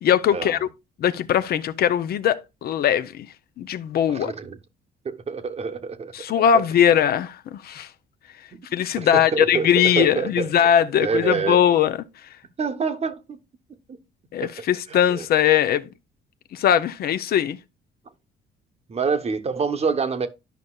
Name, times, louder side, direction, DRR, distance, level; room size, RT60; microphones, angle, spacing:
voice 1, 0.0-0.7 1.0-3.3 3.6-4.3 6.1-7.9 8.7-12.0 14.3-15.9 16.5-17.6, left 9 dB, 60° left, 0.5 m, -20 dB
voice 2, 4.1-4.6 5.0-6.1 6.5-6.7 8.5-8.6 9.0-10.5 11.0-11.6 12.6-13.4 13.9-14.0 14.4-14.5 14.9-15.3 18.9-20.3, right 5 dB, 35° right, 0.9 m, -27 dB
11.5 x 5.3 x 2.3 m
cardioid pair, 95°, 18 cm